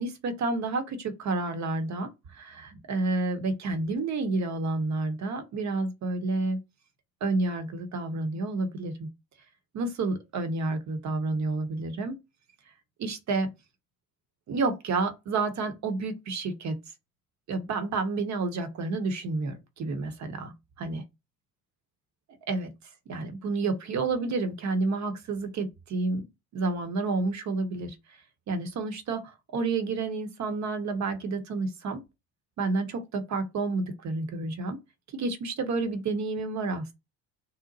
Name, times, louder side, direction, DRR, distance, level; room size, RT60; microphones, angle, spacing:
voice 1, 0.0-6.6 7.2-9.1 9.7-12.2 13.0-13.5 14.5-16.8 17.5-20.5 20.8-21.0 22.5-22.7 23.1-26.2 26.5-28.0 28.5-32.0 32.6-34.8 35.1-36.9, right 3 dB, 40° right, 0.8 m, -30 dB
2.7 x 2.1 x 3.9 m
hypercardioid pair, 60°, 45 cm